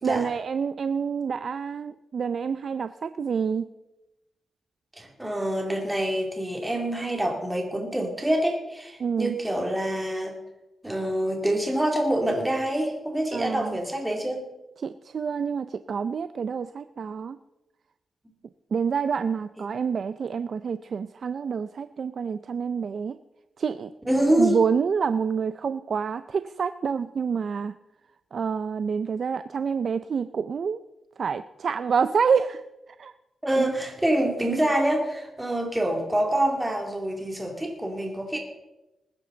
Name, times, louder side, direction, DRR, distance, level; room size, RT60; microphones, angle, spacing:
voice 1, 0.0-3.7 9.0-9.4 13.3-13.8 14.8-17.4 18.7-23.2 23.6-23.9 24.3-27.7 28.3-30.8 31.2-33.1 33.6-33.7, right 6 dB, 55° right, 12 dB, 0.4 m, -27 dB
voice 2, 5.0-10.3 10.8-14.4 19.6-19.7 24.1-24.6 33.4-38.4, right 1 dB, 10° right, 1 dB, 2.6 m, -26 dB
20.0 x 9.9 x 3.9 m, 0.97 s
cardioid pair, 100°, 0 cm